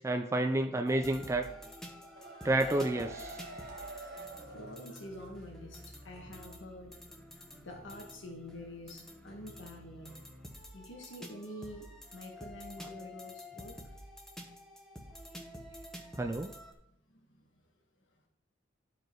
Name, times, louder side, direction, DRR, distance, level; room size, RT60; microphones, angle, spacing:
voice 1, 0.0-1.5 2.4-3.4 16.2-16.5, right 1 dB, 15° right, 5 dB, 0.4 m, -30 dB
sound 1, 0.9-16.7, left 1 dB, 5° left, 1.1 m, -49 dB
sound 2, 1.8-5.4 5.7-5.8 6.2-6.3, right 3 dB, 55° right, 1.2 m, -47 dB
voice 2, 3.2-6.9 7.6-10.2 10.7-13.8 17.1-17.5, left 1 dB, 85° left, 2 dB, 1.5 m, -48 dB
11.0 x 5.1 x 4.6 m, 0.77 s
head